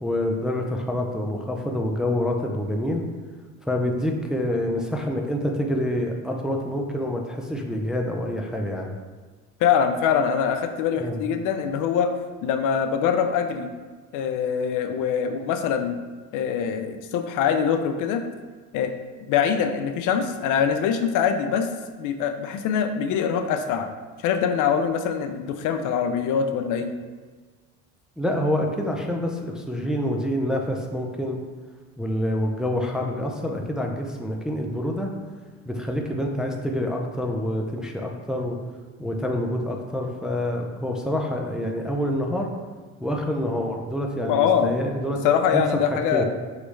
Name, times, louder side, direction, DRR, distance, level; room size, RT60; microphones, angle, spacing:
voice 1, 0.0-3.0 3.7-9.0 11.0-11.2 28.2-31.4 32.0-35.1 35.6-38.6 39.0-42.5 43.0-45.2 45.5-45.6 46.1-46.2, left 1 dB, ahead, 1 dB, 0.4 m, -27 dB
voice 2, 9.6-12.1 12.4-13.7 14.1-16.0 16.3-18.2 18.7-18.9 19.3-21.7 22.0-23.9 24.2-26.9 44.3-44.7 45.2-46.2, left 7 dB, 65° left, 7 dB, 0.5 m, -23 dB
4.9 x 3.1 x 3.1 m, 1.4 s
supercardioid pair, 95°, 34 cm